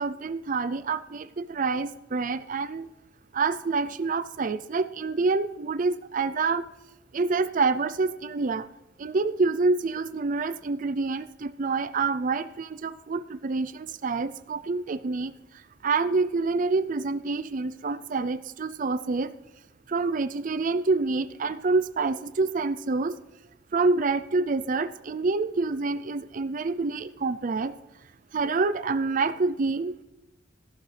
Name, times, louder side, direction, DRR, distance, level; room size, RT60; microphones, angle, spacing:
voice 1, 0.0-2.9 3.3-6.7 7.1-8.6 9.0-15.3 15.8-19.3 19.9-23.2 23.7-27.7 28.3-29.9, right 3 dB, 45° right, 13 dB, 0.5 m, -27 dB
14.5 x 11.5 x 3.3 m, 0.99 s
head